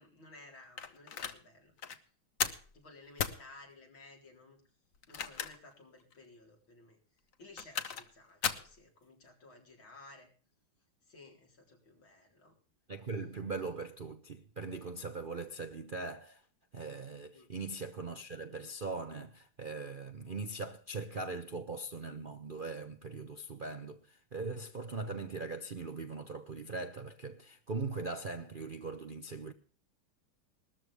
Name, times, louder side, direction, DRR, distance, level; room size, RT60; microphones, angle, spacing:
voice 1, 0.0-1.7 2.7-4.6 5.1-7.0 7.4-10.3 11.1-12.6 17.3-17.5, left 2 dB, 80° left, 4.9 m, -56 dB
sound 1, 0.8-1.4 1.8-2.0 2.4-2.7 3.2-3.4 4.9-5.7 6.1-6.2 7.3-8.1 8.4-8.7, left 7 dB, 50° left, 1.2 m, -36 dB
voice 2, 12.9-16.4 16.7-29.5, right 3 dB, 50° right, 0.6 m, -40 dB
19.5 x 13.5 x 3.4 m
omnidirectional pair, 2.1 m